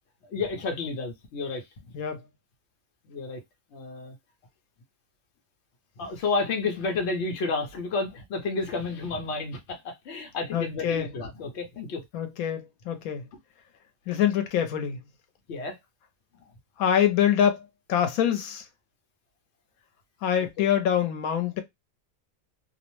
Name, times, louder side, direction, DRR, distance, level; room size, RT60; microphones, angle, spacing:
voice 1, 0.3-1.9 3.1-3.4 3.7-4.1 6.0-12.0 15.5-15.8, left 3 dB, 60° left, 0.9 m, -31 dB
voice 2, 10.5-11.1 12.1-13.2 14.1-15.0 16.8-18.6 20.2-21.6, left 9 dB, 85° left, 1.1 m, -25 dB
2.7 x 2.0 x 2.9 m
omnidirectional pair, 1.5 m